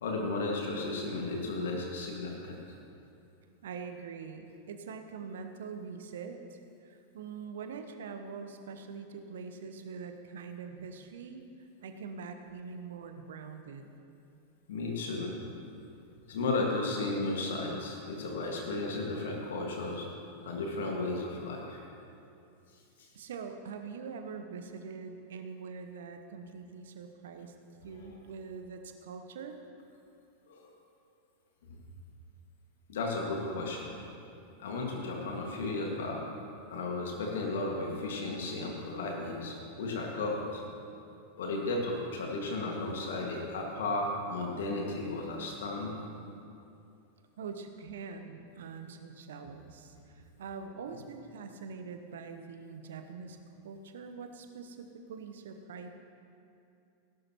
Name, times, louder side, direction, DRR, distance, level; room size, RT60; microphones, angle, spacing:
voice 1, 0.0-2.6 14.7-15.3 16.3-20.1 20.4-21.8 23.0-23.1 30.5-30.7 31.7-31.8 32.9-33.9 34.6-36.2 36.7-40.6 41.4-46.0, left 2 dB, 60° left, 0 dB, 1.8 m, -34 dB
voice 2, 3.6-13.9 23.1-27.5 27.8-29.6 47.4-53.4 53.6-55.9, right 5 dB, 65° right, 7 dB, 0.9 m, -44 dB
17.0 x 12.0 x 3.0 m, 2.6 s
figure-of-eight pair, 90°, 0 cm